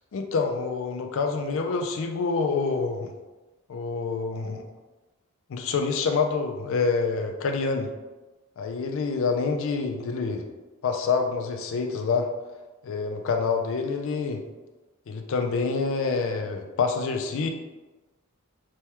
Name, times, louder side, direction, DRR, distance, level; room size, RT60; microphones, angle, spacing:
voice 1, 0.1-3.1 3.7-4.6 5.5-7.9 8.6-10.5 10.8-12.3 12.8-14.4 15.1-17.5, left 4 dB, 60° left, 5 dB, 0.3 m, -27 dB
3.3 x 2.2 x 2.9 m, 1.2 s
head